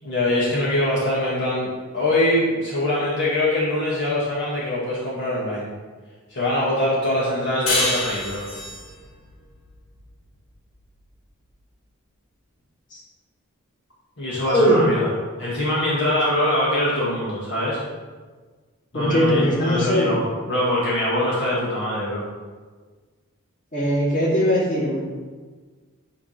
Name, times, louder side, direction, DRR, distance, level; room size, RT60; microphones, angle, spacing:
voice 1, 0.0-5.7 6.3-8.4 14.2-15.1 15.4-17.8 18.9-22.2, left 1 dB, 60° left, -8 dB, 1.9 m, -23 dB
sound 1, 7.7-10.8, left 1 dB, 75° left, 1.6 m, -27 dB
voice 2, 14.5-14.8 18.9-20.1 23.7-25.0, equal, 40° left, -6 dB, 2.4 m, -20 dB
9.5 x 3.3 x 5.8 m, 1.4 s
head